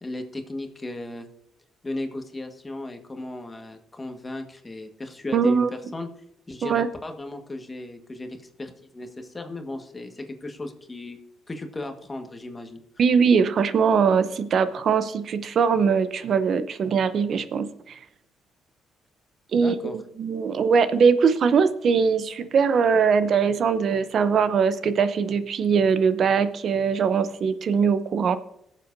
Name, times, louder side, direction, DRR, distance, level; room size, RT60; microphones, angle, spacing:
voice 1, 0.0-1.3 1.8-6.1 6.5-11.2 11.5-12.8 19.6-20.0, left 2 dB, 20° left, 5 dB, 1.5 m, -36 dB
voice 2, 5.3-5.7 6.6-6.9 13.0-18.0 19.5-28.4, right 6 dB, 60° right, 13 dB, 0.7 m, -21 dB
20.5 x 7.4 x 2.7 m, 0.76 s
cardioid pair, 90°, 0 cm